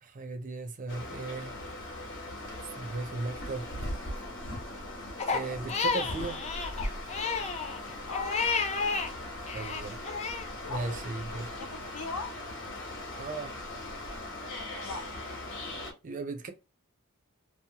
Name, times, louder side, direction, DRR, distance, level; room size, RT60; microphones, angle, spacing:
voice 1, 0.0-1.6 2.8-3.7 5.3-6.4 9.5-10.0 10.7-11.5 13.2-13.6 16.0-16.5, right 3 dB, 35° right, 0.4 m, -36 dB
sound 1, 0.9-15.9, left 1 dB, 55° left, 1.0 m, -40 dB
Crying sobbing, 5.2-9.1 9.5-10.5, left 5 dB, 30° left, 0.4 m, -31 dB
voice 2, 8.0-8.4 10.6-11.0 11.3-12.3 14.8-15.0, left 4 dB, 85° left, 0.8 m, -39 dB
2.8 x 2.1 x 2.8 m
head